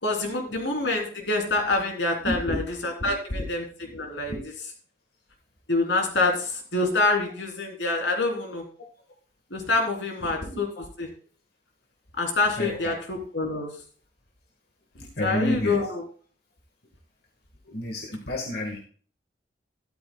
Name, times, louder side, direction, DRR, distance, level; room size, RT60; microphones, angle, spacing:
voice 1, 0.0-3.6 3.9-4.3 5.7-8.6 9.5-10.7 11.0-11.1 12.2-13.7 15.2-16.0, left 2 dB, 80° left, 1 dB, 3.4 m, -26 dB
voice 2, 2.2-2.6 3.0-3.5 3.8-4.4 10.4-10.6 12.6-13.0 14.9-15.9 17.7-18.8, left 1 dB, 60° left, 1 dB, 1.6 m, -31 dB
13.0 x 12.5 x 2.3 m, 0.43 s
head